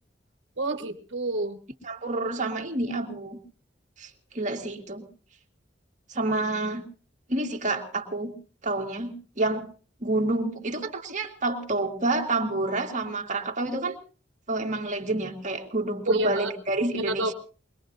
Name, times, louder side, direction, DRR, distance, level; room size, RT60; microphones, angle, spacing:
voice 1, 0.6-1.6 16.1-16.5 17.0-17.3, right 2 dB, 75° right, 6 dB, 1.5 m, -28 dB
voice 2, 1.8-3.4 4.0-4.1 4.3-5.1 6.1-6.8 7.3-8.3 8.6-9.7 10.0-14.0 14.5-17.3, right 2 dB, 40° right, 3 dB, 2.0 m, -28 dB
23.0 x 21.5 x 2.7 m, 0.38 s
head